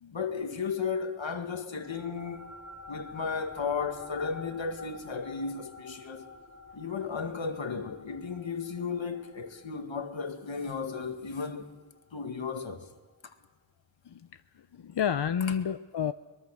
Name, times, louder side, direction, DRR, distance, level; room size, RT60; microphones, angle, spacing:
voice 1, 0.1-2.5 2.9-6.3 6.7-11.7 12.1-12.9 13.2-13.4, left 5 dB, 85° left, 2.0 m, -34 dB
sound 1, 1.7-12.5, left 4 dB, 35° left, 2.7 m, -49 dB
voice 2, 14.7-16.1, left 8 dB, 65° left, 0.7 m, -30 dB
23.0 x 22.0 x 6.4 m
wide cardioid pair, 65°, 45 cm